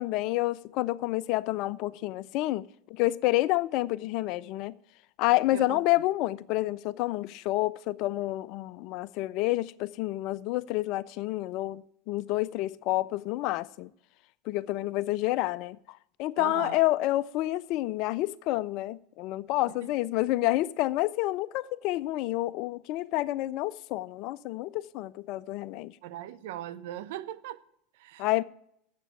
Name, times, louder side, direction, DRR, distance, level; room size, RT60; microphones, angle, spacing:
voice 1, 0.0-4.7 5.2-13.9 14.5-25.9 28.2-28.4, left 17 dB, 55° left, 0.3 m, -29 dB
voice 2, 16.4-16.8 19.8-19.9 26.0-27.6 27.9-28.4, right 12 dB, 65° right, 0.6 m, -39 dB
9.0 x 7.4 x 8.7 m
hypercardioid pair, 80°, 0 cm